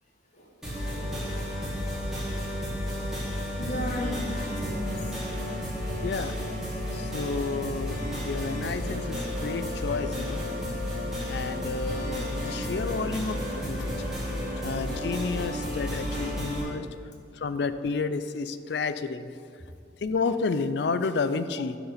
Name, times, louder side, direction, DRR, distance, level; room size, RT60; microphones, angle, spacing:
sound 1, 0.6-16.6, equal, 5° right, 2.4 m, -32 dB
voice 1, 3.6-5.5, left 1 dB, 40° left, -1 dB, 1.4 m, -35 dB
voice 2, 6.0-6.4 6.9-10.5 11.2-14.1 14.6-16.9 17.3-19.3 20.0-21.8, left 4 dB, 60° left, 12 dB, 0.4 m, -31 dB
11.5 x 4.9 x 5.0 m, 2.3 s
head